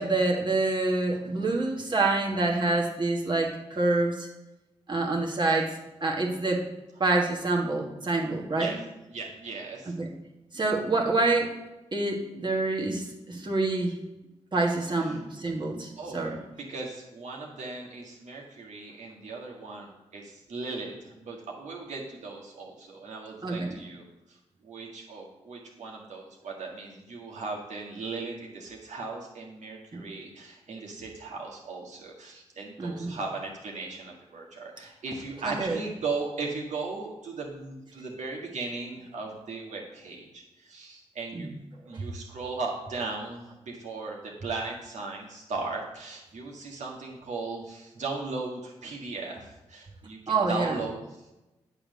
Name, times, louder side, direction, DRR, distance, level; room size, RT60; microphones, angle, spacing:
voice 1, 0.0-4.3 4.9-5.7 6.0-6.6 7.0-8.8 10.0-10.1 10.5-11.5 11.9-13.9 14.5-16.4 23.4-23.8 29.9-30.1 32.8-33.2 35.4-35.8 41.3-41.5 41.9-42.0 50.3-50.8, right 2 dB, 40° right, -1 dB, 1.7 m, -27 dB
voice 2, 9.1-9.9 15.0-15.2 16.0-24.4 24.6-41.5 41.9-51.0, right 3 dB, 70° right, -1 dB, 1.8 m, -37 dB
8.5 x 3.5 x 6.6 m, 1.0 s
supercardioid pair, 45°, 13 cm